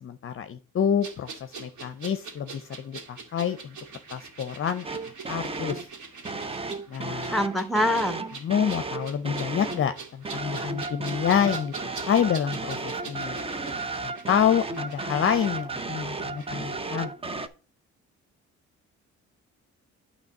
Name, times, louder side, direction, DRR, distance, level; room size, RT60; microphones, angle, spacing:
voice 1, 0.0-3.8 4.1-4.9 5.3-5.9 6.9-7.4 8.4-13.4 14.0-17.1, left 8 dB, 45° left, 10 dB, 0.7 m, -27 dB
sound 1, 1.0-16.5 16.8-16.9, right 5 dB, 75° right, 1.9 m, -43 dB
sound 2, 4.8-5.9 6.2-9.9 10.2-17.5, right 3 dB, 20° right, 0.7 m, -34 dB
voice 2, 7.3-8.2, left 1 dB, ahead, 8 dB, 1.2 m, -24 dB
9.2 x 3.1 x 6.5 m, 0.37 s
cardioid pair, 90°, 30 cm